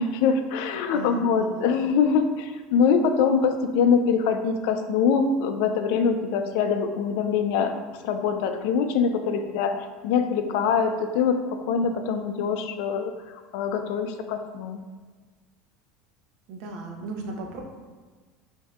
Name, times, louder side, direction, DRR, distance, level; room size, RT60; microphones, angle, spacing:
voice 1, 0.0-7.7 8.0-14.8, left 6 dB, 75° left, 7 dB, 0.4 m, -24 dB
voice 2, 0.7-1.6 16.5-17.6, right 3 dB, 65° right, 2 dB, 0.7 m, -37 dB
6.1 x 2.7 x 2.4 m, 1.4 s
supercardioid pair, 130°, 0 cm